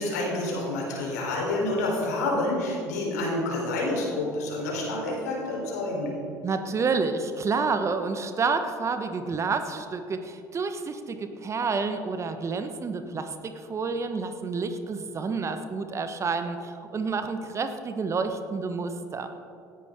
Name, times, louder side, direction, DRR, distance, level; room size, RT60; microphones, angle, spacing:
voice 1, 0.0-6.1, left 2 dB, 75° left, -2 dB, 3.9 m, -28 dB
voice 2, 6.4-19.3, right 4 dB, 30° right, 8 dB, 1.2 m, -29 dB
17.5 x 14.0 x 3.7 m, 2.5 s
figure-of-eight pair, 60°, 9 cm